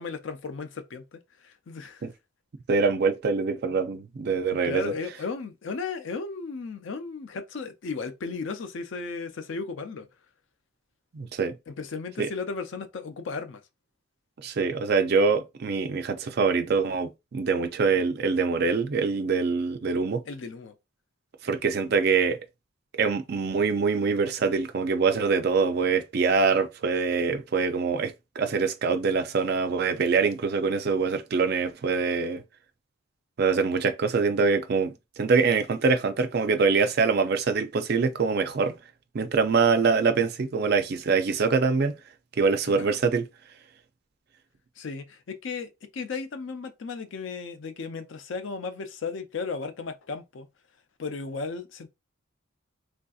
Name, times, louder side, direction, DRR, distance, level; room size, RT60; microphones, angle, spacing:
voice 1, 0.0-2.1 4.5-10.1 11.7-13.6 20.3-20.7 42.7-43.0 44.8-50.5 51.0-51.9, left 4 dB, 60° left, 0.4 m, -35 dB
voice 2, 2.7-4.9 11.1-11.6 12.2-12.3 14.4-20.2 21.4-22.4 23.0-32.4 33.4-38.8 39.1-41.9 42.4-43.2, right 5 dB, 50° right, 0.4 m, -24 dB
3.3 x 2.6 x 2.3 m
head